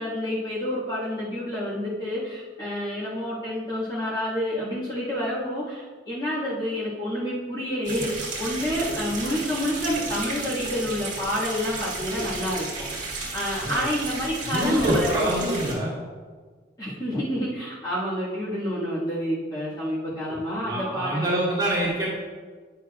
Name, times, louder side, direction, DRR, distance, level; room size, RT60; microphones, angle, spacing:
voice 1, 0.0-15.2 16.8-21.3, equal, 20° left, -10 dB, 1.7 m, -29 dB
sound 1, 7.8-15.7, right 2 dB, 45° right, 1.9 m, -32 dB
voice 2, 14.5-15.9 20.3-22.1, right 1 dB, 20° right, -8 dB, 2.2 m, -26 dB
9.2 x 6.8 x 2.4 m, 1.5 s
head